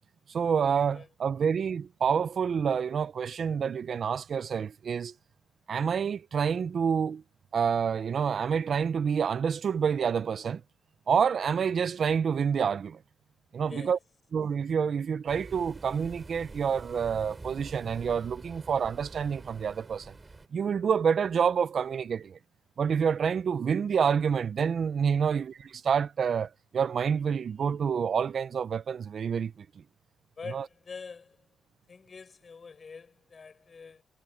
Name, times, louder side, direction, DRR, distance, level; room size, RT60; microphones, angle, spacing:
voice 1, 0.3-5.1 5.7-7.2 7.5-10.6 11.1-13.0 13.5-14.0 14.3-20.1 20.5-22.4 22.8-29.5 30.5-30.6, right 7 dB, 50° right, 0.7 m, -28 dB
sound 1, 15.3-20.5, right 3 dB, 20° right, 7.5 m, -46 dB
voice 2, 30.4-31.4 31.9-34.0, left 5 dB, 35° left, 6.6 m, -45 dB
cardioid pair, 90°, 0 cm